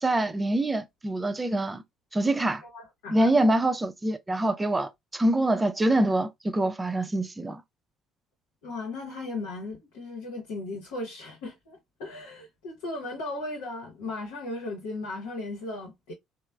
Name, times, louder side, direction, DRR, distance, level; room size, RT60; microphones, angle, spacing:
voice 1, 0.0-1.8 2.1-2.6 3.1-7.6, right 1 dB, 20° right, 0.5 m, -25 dB
voice 2, 2.6-3.3 8.6-16.1, left 2 dB, 85° left, 0.9 m, -36 dB
3.1 x 2.0 x 2.2 m
supercardioid pair, 70°, 0 cm